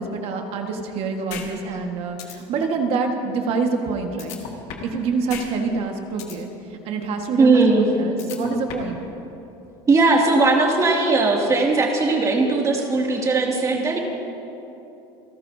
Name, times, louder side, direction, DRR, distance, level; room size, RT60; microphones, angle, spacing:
voice 1, 0.0-4.4 4.8-9.0, right 4 dB, 55° right, 4 dB, 1.6 m, -26 dB
sound 1, 1.3-1.5 1.8-1.9 2.2-2.3 4.2-5.0 5.3-5.5 5.8-6.4 8.2-9.0, left 8 dB, 70° left, 1.9 m, -34 dB
voice 2, 7.4-7.9 9.9-14.0, right 3 dB, 25° right, -1 dB, 2.4 m, -18 dB
27.5 x 13.5 x 2.8 m, 3.0 s
supercardioid pair, 115°, 12 cm